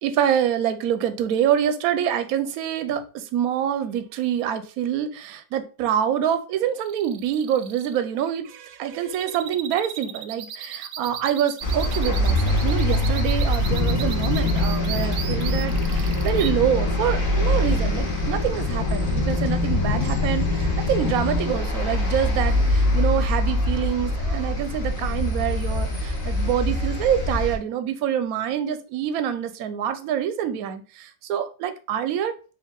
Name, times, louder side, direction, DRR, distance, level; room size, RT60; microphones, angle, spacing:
voice 1, 0.0-32.3, right 9 dB, 70° right, 10 dB, 0.9 m, -26 dB
sound 1, 6.8-16.5, right 10 dB, 90° right, 1.3 m, -36 dB
sound 2, 11.6-27.6, left 1 dB, 35° left, 0.9 m, -24 dB
sound 3, 13.6-21.6, left 6 dB, 65° left, 1.1 m, -28 dB
4.6 x 2.7 x 3.7 m, 0.35 s
omnidirectional pair, 1.9 m